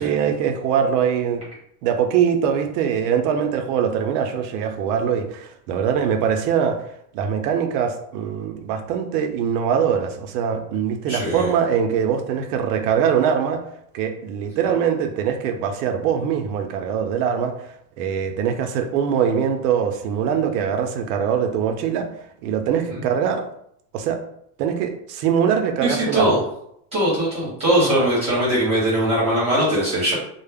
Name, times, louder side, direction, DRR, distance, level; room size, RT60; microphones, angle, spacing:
voice 1, 0.0-1.4 1.8-6.8 7.1-13.6 13.9-17.5 18.0-22.1 22.4-23.4 23.9-24.2 24.6-26.3, right 7 dB, 90° right, 6 dB, 0.6 m, -22 dB
voice 2, 11.1-11.5 22.9-23.0 25.8-26.4 26.9-30.1, right 1 dB, 15° right, -9 dB, 0.9 m, -20 dB
2.2 x 2.0 x 3.3 m, 0.73 s
cardioid pair, 180°, 46 cm